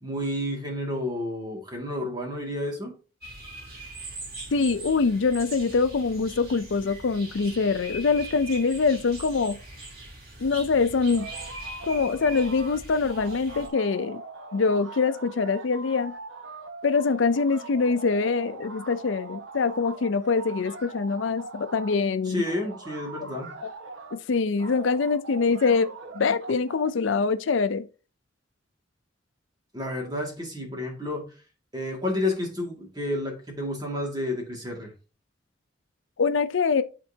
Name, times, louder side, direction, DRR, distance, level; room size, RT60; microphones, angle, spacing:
voice 1, 0.0-2.9 22.3-23.5 29.7-31.3 31.7-34.9, left 1 dB, 20° right, 2.1 m, -30 dB
sound 1, 3.2-13.7, right 2 dB, 50° right, 2.7 m, -41 dB
voice 2, 4.5-9.6 10.4-11.3 11.8-14.2 14.5-16.1 16.8-22.4 23.2-23.3 23.6-23.7 24.1-25.9 26.1-27.9 36.2-36.8, left 4 dB, 75° left, 0.5 m, -24 dB
sound 2, 11.1-12.8 13.1-22.0 22.4-24.2 24.6-26.9, right 3 dB, 80° right, 1.0 m, -42 dB
11.0 x 4.4 x 2.8 m
head